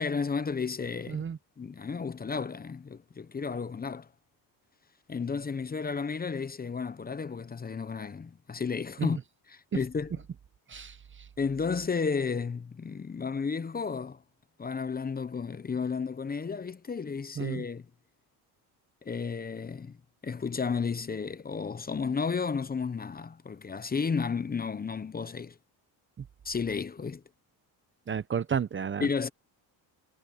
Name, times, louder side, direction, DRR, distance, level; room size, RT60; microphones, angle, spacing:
voice 1, 0.0-1.2 1.6-4.1 5.1-9.2 9.5-10.1 11.4-14.2 14.6-17.8 19.0-19.9 20.2-25.5 26.4-27.2 29.0-29.3, left 5 dB, 20° left, 0.8 m, -32 dB
voice 2, 1.1-1.4 9.0-9.1 10.7-11.3 17.4-17.6 26.2-26.3 28.1-29.1, right 7 dB, 30° right, 0.8 m, -32 dB
cardioid pair, 105°, 43 cm